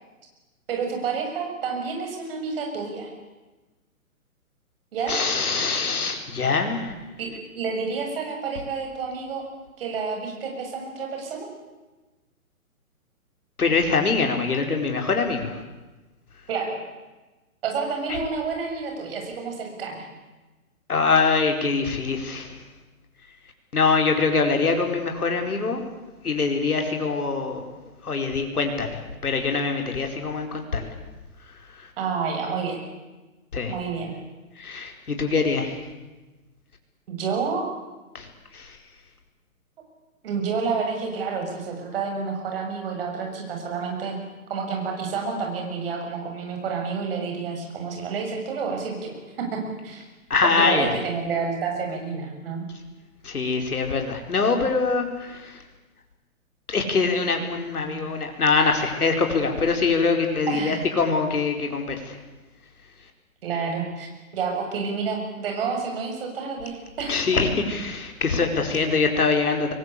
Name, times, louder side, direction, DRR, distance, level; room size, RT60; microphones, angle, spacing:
voice 1, 0.7-3.1 4.9-5.2 7.2-9.4 9.8-11.5 16.5-16.8 17.6-20.1 32.0-32.8 33.7-34.1 37.1-37.6 40.2-44.2 44.5-50.0 50.4-52.7 60.5-60.9 63.4-67.2, right 5 dB, 40° right, 2 dB, 7.2 m, -29 dB
voice 2, 5.1-6.9 13.6-15.6 20.9-22.6 23.7-25.8 26.2-27.6 28.0-30.9 31.7-31.9 33.5-33.7 34.6-35.8 38.1-38.8 50.3-50.9 53.2-55.6 56.7-62.2 67.1-69.7, left 4 dB, 90° left, 4 dB, 4.9 m, -24 dB
24.5 x 22.0 x 8.5 m, 1.2 s
hypercardioid pair, 160°, 43 cm